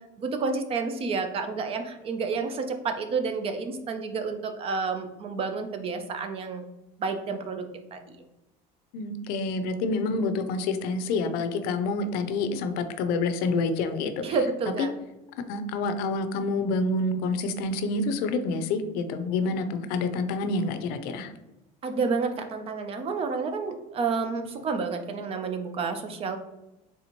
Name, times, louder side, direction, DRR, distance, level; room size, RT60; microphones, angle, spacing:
voice 1, 0.2-6.6 7.0-7.7 7.9-8.2 14.2-14.9 21.8-26.4, right 4 dB, 35° right, 7 dB, 0.5 m, -30 dB
voice 2, 8.9-14.4 14.8-14.9 15.3-21.3, left 3 dB, 70° left, 9 dB, 0.5 m, -28 dB
4.2 x 3.6 x 2.9 m, 0.98 s
cardioid pair, 140°, 17 cm